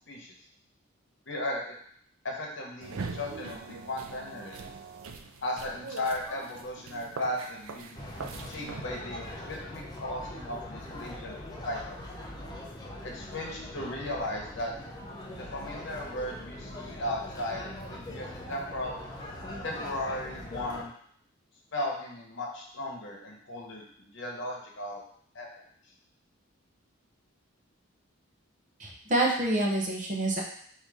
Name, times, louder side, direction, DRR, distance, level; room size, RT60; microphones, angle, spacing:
voice 1, 1.3-1.7 2.2-4.6 5.4-8.0 8.5-11.4 11.6-12.0 13.0-14.7 15.3-19.0 19.6-20.9 21.7-25.0 25.3-25.5, left 1 dB, 60° left, -1 dB, 1.0 m, -36 dB
sound 1, 2.8-8.8, right 4 dB, 80° right, 0.4 m, -42 dB
sound 2, 7.9-20.8, left 1 dB, 20° left, 0.6 m, -42 dB
voice 2, 28.8-30.4, right 1 dB, 35° right, -1 dB, 0.8 m, -27 dB
3.9 x 2.7 x 4.8 m, 0.64 s
head